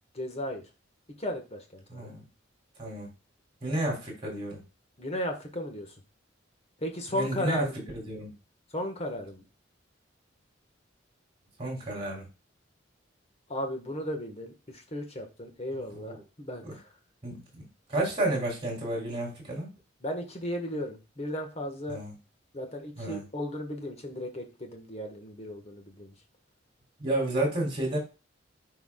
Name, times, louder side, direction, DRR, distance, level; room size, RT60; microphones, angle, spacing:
voice 1, 0.1-0.6 1.2-2.1 5.0-5.9 6.8-7.9 8.7-9.4 13.5-16.9 20.0-22.0 22.5-26.1, left 1 dB, 35° left, 4 dB, 1.6 m, -35 dB
voice 2, 1.9-2.2 2.8-3.1 3.6-4.6 7.1-7.7 8.0-8.3 11.6-12.3 15.9-16.2 16.6-16.7 17.2-19.7 21.9-22.1 23.0-23.2 27.0-28.0, right 1 dB, 30° right, 0 dB, 3.5 m, -31 dB
12.0 x 4.8 x 2.4 m, 0.30 s
head